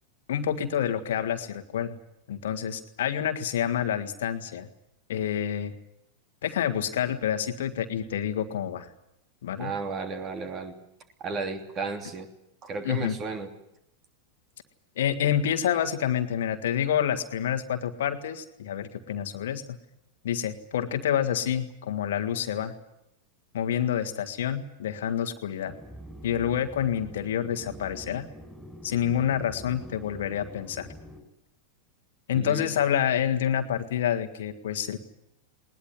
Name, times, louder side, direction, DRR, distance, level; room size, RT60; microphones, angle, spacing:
voice 1, 0.3-2.0 2.3-4.7 5.1-5.7 6.4-8.9 9.4-9.7 12.8-13.2 15.0-19.8 20.2-22.7 23.5-25.7 26.2-28.3 28.8-30.9 32.3-35.0, left 9 dB, 60° left, 6 dB, 1.7 m, -28 dB
voice 2, 9.6-10.7 11.2-12.3 12.6-13.5 32.3-32.7, right 4 dB, 30° right, 6 dB, 3.2 m, -33 dB
sound 1, 25.6-31.2, equal, ahead, 7.0 m, -45 dB
20.5 x 20.0 x 9.7 m, 0.83 s
figure-of-eight pair, 90°, 0 cm